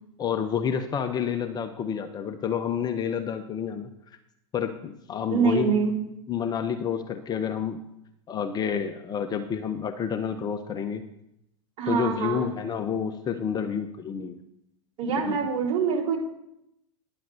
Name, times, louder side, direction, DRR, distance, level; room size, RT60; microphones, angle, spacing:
voice 1, 0.2-3.9 4.5-5.8 6.3-7.8 8.3-11.0 11.9-14.4 15.2-15.4, left 7 dB, 25° left, 7 dB, 0.7 m, -29 dB
voice 2, 5.3-6.0 11.8-12.5 15.0-16.2, right 5 dB, 40° right, -5 dB, 4.2 m, -25 dB
10.5 x 5.8 x 6.6 m, 0.83 s
hypercardioid pair, 100°, 17 cm